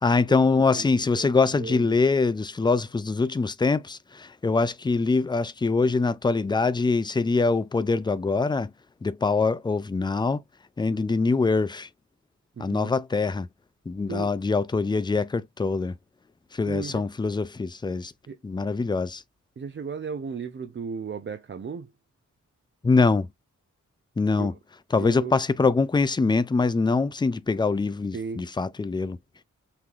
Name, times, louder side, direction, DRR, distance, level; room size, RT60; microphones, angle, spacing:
voice 1, 0.0-8.7 9.0-10.4 10.8-11.9 12.6-13.5 13.9-16.0 16.5-18.1 18.4-19.2 22.8-23.3 24.2-24.5 24.9-29.2, left 4 dB, 15° left, 0.3 m, -24 dB
voice 2, 0.7-2.0 12.6-12.9 14.1-14.3 16.7-17.0 18.3-18.4 19.6-21.9 24.4-24.5 25.0-25.4 28.1-28.5, right 5 dB, 40° right, 0.5 m, -35 dB
5.8 x 3.3 x 2.4 m
wide cardioid pair, 135°, 30 cm